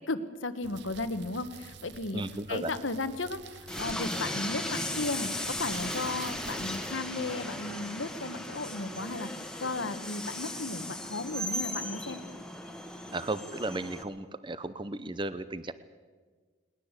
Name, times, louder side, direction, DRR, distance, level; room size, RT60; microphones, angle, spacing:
voice 1, 0.1-2.2 2.5-12.2, left 3 dB, 85° left, 11 dB, 1.4 m, -35 dB
sound 1, 0.6-6.9, right 5 dB, 65° right, 0.8 m, -48 dB
voice 2, 2.1-2.7 13.1-15.7, right 2 dB, 25° right, 13 dB, 0.7 m, -35 dB
Train, 3.7-14.0, left 1 dB, 5° left, 1.5 m, -37 dB
20.5 x 20.0 x 8.3 m, 1.5 s
head